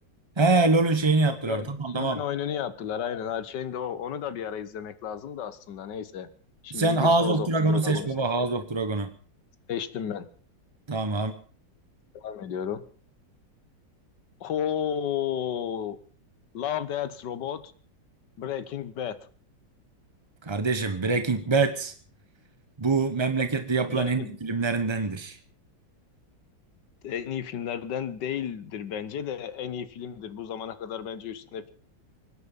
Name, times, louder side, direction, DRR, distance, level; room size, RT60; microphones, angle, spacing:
voice 1, 0.4-2.2 6.7-9.1 10.9-11.3 20.4-21.9 22.8-25.4, right 3 dB, 25° right, 9 dB, 0.6 m, -24 dB
voice 2, 1.4-6.3 6.6-8.3 9.7-10.3 12.1-12.8 14.4-16.0 16.5-17.7 18.4-19.2 23.9-24.4 27.0-31.7, left 9 dB, 70° left, 14 dB, 1.7 m, -33 dB
24.5 x 10.5 x 5.4 m, 0.42 s
omnidirectional pair, 2.0 m